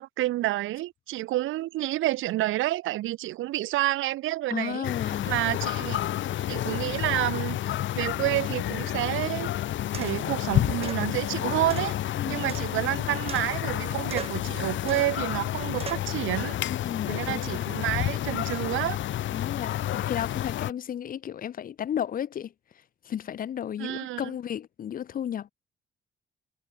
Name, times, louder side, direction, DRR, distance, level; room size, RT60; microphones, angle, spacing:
voice 1, 0.0-4.9 5.3-6.1 6.5-7.6 8.0-9.5 9.9-16.6 17.1-19.0 23.8-24.3, right 16 dB, 80° right, 0.7 m, -29 dB
voice 2, 4.5-5.3 12.2-12.5 16.6-17.8 19.3-22.5 23.0-25.5, left 9 dB, 45° left, 0.5 m, -33 dB
Suburbs Ambience, 4.8-20.7, left 12 dB, 70° left, 1.2 m, -30 dB
sound 1, 9.9-10.3 10.8-11.1 11.7-13.0 13.3-13.8 14.1-14.5 14.9-15.2 15.8-16.1, right 6 dB, 30° right, 0.7 m, -40 dB
cardioid pair, 90°, 20 cm